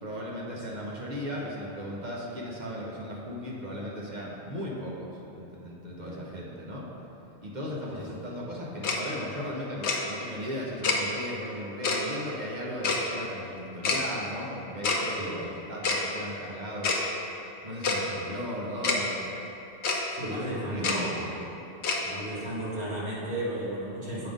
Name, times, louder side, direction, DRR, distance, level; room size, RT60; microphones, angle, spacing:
voice 1, 0.0-6.9 7.4-17.0 17.6-19.2 20.3-21.1, equal, 45° right, -3 dB, 1.0 m, -37 dB
voice 2, 5.9-6.2 7.9-8.0 15.2-15.4 20.2-21.4 22.0-24.3, right 1 dB, 70° right, -8 dB, 2.0 m, -34 dB
Tick-tock, 8.8-9.0 9.8-10.0 10.8-11.0 11.8-12.0 12.8-13.0 13.8-14.0 14.8-15.0 15.8-16.0 16.8-17.0 17.8-18.0 18.8-19.0 19.8-20.0 20.8-21.0 21.8-22.0, left 4 dB, 75° left, 1.0 m, -26 dB
8.0 x 3.7 x 5.1 m, 3.0 s
omnidirectional pair, 1.1 m